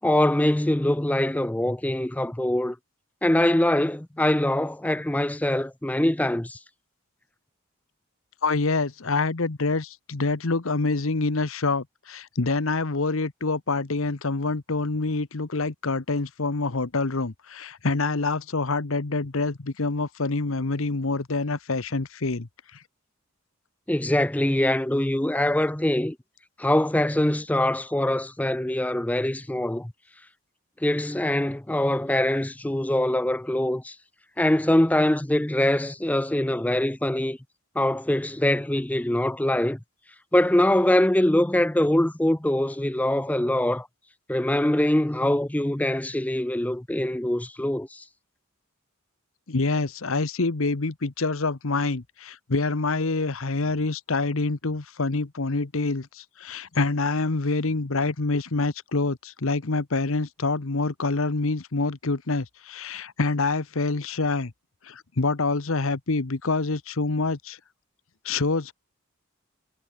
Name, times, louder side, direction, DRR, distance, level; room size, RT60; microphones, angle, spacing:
voice 1, 0.0-2.8 3.2-6.6 23.9-26.2 26.6-29.9 30.8-34.0 34.4-37.4 37.8-39.8 40.3-43.9 44.3-48.0, left 1 dB, 5° left, 0.4 m, -23 dB
voice 2, 8.4-22.5 49.5-64.5 64.8-67.6 68.2-68.7, left 3 dB, 70° left, 1.1 m, -26 dB
head